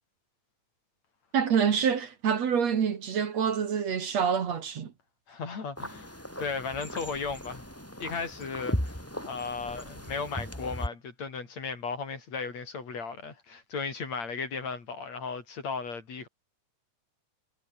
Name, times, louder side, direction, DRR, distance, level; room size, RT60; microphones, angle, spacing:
voice 1, 1.3-4.9, right 7 dB, 55° right, 3.1 m, -26 dB
voice 2, 5.3-7.7 8.0-16.3, left 5 dB, 55° left, 5.1 m, -36 dB
sound 1, 5.8-10.9, equal, 5° left, 6.3 m, -37 dB
omnidirectional pair, 3.7 m